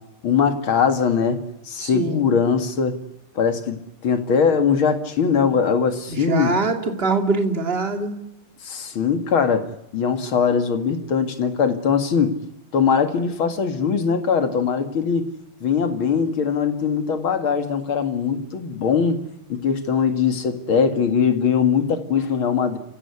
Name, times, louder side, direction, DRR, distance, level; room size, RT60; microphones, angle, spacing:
voice 1, 0.2-3.0 3.4-6.5 8.6-9.7 9.9-12.3 12.7-15.3 15.6-19.2 19.5-22.8, left 6 dB, 70° left, 8 dB, 2.9 m, -21 dB
voice 2, 1.8-2.3 6.1-8.1, right 3 dB, 25° right, 5 dB, 2.7 m, -23 dB
29.0 x 16.5 x 9.6 m, 0.88 s
omnidirectional pair, 2.3 m